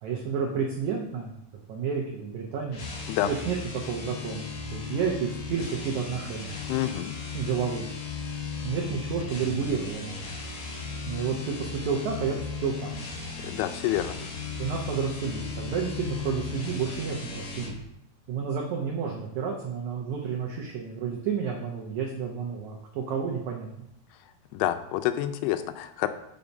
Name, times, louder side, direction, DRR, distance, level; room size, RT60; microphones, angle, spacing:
voice 1, 0.0-1.3 1.7-2.8 3.2-3.6 3.8-6.5 7.3-7.9 8.6-10.3 11.1-12.4 12.6-12.9 14.6-17.7 18.3-23.7, right 6 dB, 85° right, -1 dB, 1.6 m, -30 dB
sound 1, 2.7-17.8, left 4 dB, 60° left, 2.2 m, -36 dB
voice 2, 6.7-7.2 13.4-14.2 24.5-26.1, left 13 dB, 85° left, 10 dB, 2.6 m, -28 dB
6.9 x 5.6 x 5.2 m, 0.79 s
omnidirectional pair, 4.6 m